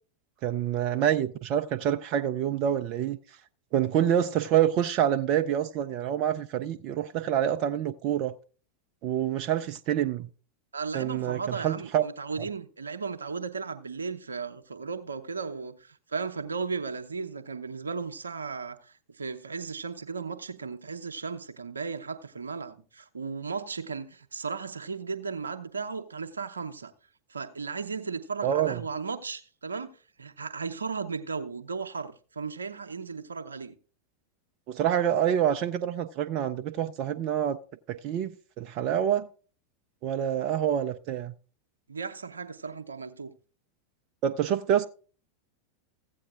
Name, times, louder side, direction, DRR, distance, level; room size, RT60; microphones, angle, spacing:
voice 1, 0.4-3.2 3.7-8.3 9.0-10.3 10.9-12.0 28.4-28.8 34.7-37.6 38.0-39.3 40.0-41.3 44.2-44.9, right 10 dB, 45° right, 0.5 m, -27 dB
voice 2, 10.7-26.9 27.3-29.9 30.2-33.7 41.9-43.3, right 5 dB, 80° right, 0.8 m, -35 dB
15.5 x 8.5 x 2.5 m
figure-of-eight pair, 90°, 0 cm